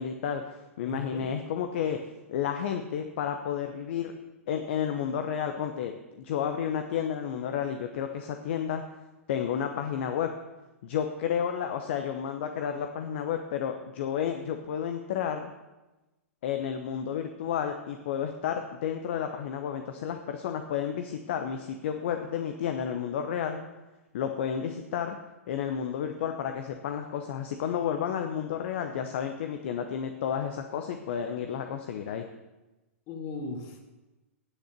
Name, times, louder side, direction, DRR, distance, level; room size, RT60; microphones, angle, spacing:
voice 1, 0.0-2.0 2.3-4.1 4.5-8.8 9.3-10.3 10.8-15.5 16.4-23.6 24.1-25.2 25.5-32.2, left 8 dB, 55° left, 6 dB, 0.9 m, -31 dB
voice 2, 0.9-1.3 33.1-33.9, left 2 dB, 40° left, 1 dB, 2.6 m, -38 dB
10.0 x 7.9 x 6.7 m, 1.1 s
figure-of-eight pair, 110°, 8 cm